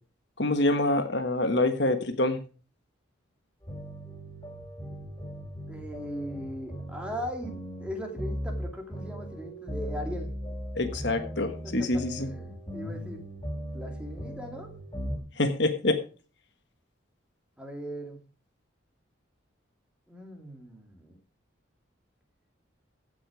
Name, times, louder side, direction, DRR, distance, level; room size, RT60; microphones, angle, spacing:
voice 1, 0.4-2.4 10.7-12.3 15.4-16.0, left 2 dB, 55° left, 8 dB, 1.4 m, -26 dB
sound 1, 3.6-15.2, equal, 20° left, 3.5 m, -38 dB
voice 2, 5.7-10.3 11.4-13.2 13.7-14.7 17.6-18.2 20.1-21.2, equal, 5° right, 2 dB, 2.4 m, -39 dB
15.5 x 6.3 x 5.0 m, 0.37 s
head